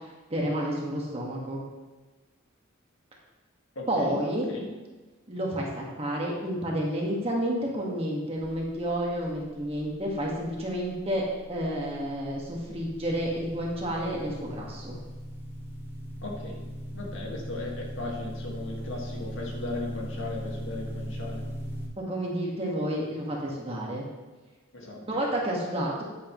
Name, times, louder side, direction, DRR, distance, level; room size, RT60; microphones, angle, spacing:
voice 1, 0.3-1.6 3.9-4.5 5.3-14.9 17.3-17.4 22.0-24.0 25.1-26.0, right 1 dB, 30° right, -3 dB, 1.7 m, -30 dB
voice 2, 3.8-4.2 4.5-4.7 16.2-16.6 16.9-21.4 24.7-25.0, left 2 dB, 75° left, -1 dB, 1.9 m, -37 dB
sound 1, 11.0-21.9, equal, 10° right, 1.3 m, -39 dB
10.5 x 9.3 x 3.1 m, 1.2 s
head